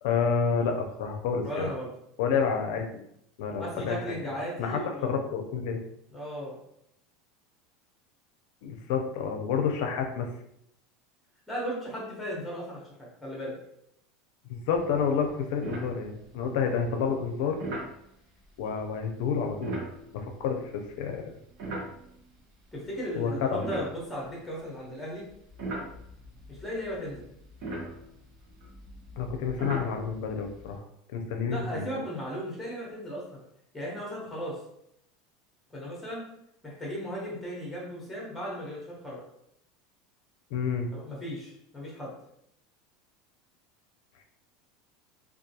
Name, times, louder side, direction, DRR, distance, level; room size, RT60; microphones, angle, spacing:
voice 1, 0.0-1.7 2.2-3.1 3.4-4.3 4.6-5.8 8.6-10.3 14.5-17.6 18.6-19.8 20.1-21.3 23.1-23.6 29.2-30.8 31.1-32.0 40.5-40.9, left 6 dB, 70° left, 4 dB, 0.5 m, -29 dB
voice 2, 1.4-1.9 3.6-5.1 6.1-6.6 11.5-13.6 22.7-25.2 26.5-27.3 31.5-33.2 33.7-34.6 35.7-36.3 36.6-39.2 40.9-42.1, equal, 5° left, -4 dB, 1.0 m, -36 dB
sound 1, 14.7-15.0 15.3-15.4 15.6-16.5 17.6-18.0 19.5-22.4 23.0-24.8 25.3-30.8, right 2 dB, 55° right, 0.8 m, -39 dB
2.3 x 2.2 x 2.7 m, 0.75 s
supercardioid pair, 145°, 0 cm